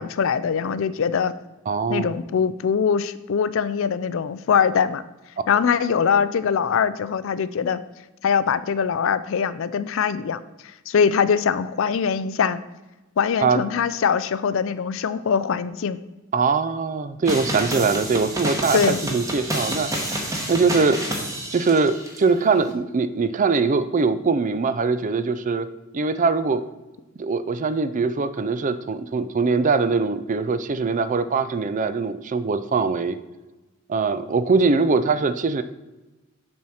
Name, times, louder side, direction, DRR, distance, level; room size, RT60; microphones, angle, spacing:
voice 1, 0.0-1.4 1.9-5.0 5.5-7.8 8.2-10.4 10.9-12.6 13.2-16.0 18.7-19.0, left 6 dB, 65° left, 15 dB, 0.4 m, -22 dB
voice 2, 1.7-2.1 13.4-13.6 16.3-21.0 21.5-25.7 25.9-26.6 27.2-33.2 33.9-35.6, right 4 dB, 35° right, 13 dB, 0.4 m, -22 dB
sound 1, 17.3-22.2, right 1 dB, 15° right, 1.2 m, -29 dB
7.2 x 4.3 x 6.3 m, 1.1 s
head